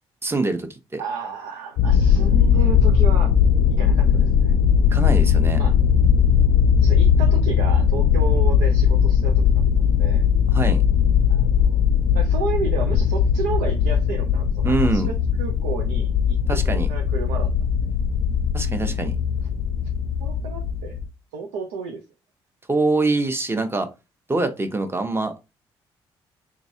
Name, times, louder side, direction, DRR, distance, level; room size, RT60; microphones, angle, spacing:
voice 1, 0.2-1.0 4.9-5.6 10.5-10.8 14.6-15.1 16.5-16.9 18.5-19.2 22.7-23.9 24.3-25.4, right 3 dB, 20° right, 0.8 m, -24 dB
voice 2, 1.0-3.3 3.8-4.5 5.6-5.7 6.8-9.4 10.0-10.2 11.3-11.8 12.1-16.6 16.9-17.5 20.2-21.0 21.3-22.0, right 5 dB, 90° right, 0.5 m, -32 dB
sound 1, 1.8-21.1, left 7 dB, 75° left, 0.5 m, -19 dB
3.5 x 3.0 x 2.7 m
supercardioid pair, 55°, 12 cm